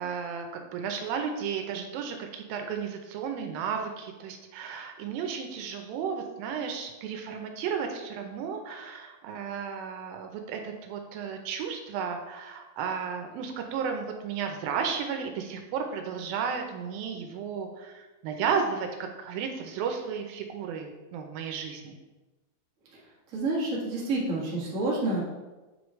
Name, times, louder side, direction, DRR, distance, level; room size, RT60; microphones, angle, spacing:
voice 1, 0.0-22.0, right 6 dB, 80° right, 4 dB, 2.3 m, -33 dB
voice 2, 23.3-25.2, right 2 dB, 50° right, -6 dB, 0.9 m, -28 dB
7.7 x 4.8 x 3.1 m, 1.1 s
omnidirectional pair, 4.3 m